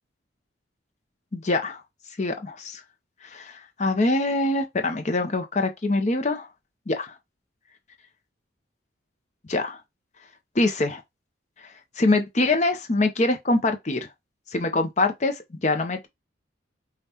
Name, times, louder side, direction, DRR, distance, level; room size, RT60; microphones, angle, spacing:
voice 1, 1.3-1.8 2.2-2.8 3.3-6.5 6.9-7.1 9.5-9.8 10.6-11.0 12.0-14.1 14.5-16.1, left 2 dB, 35° left, 0.6 m, -24 dB
5.4 x 2.3 x 2.8 m
head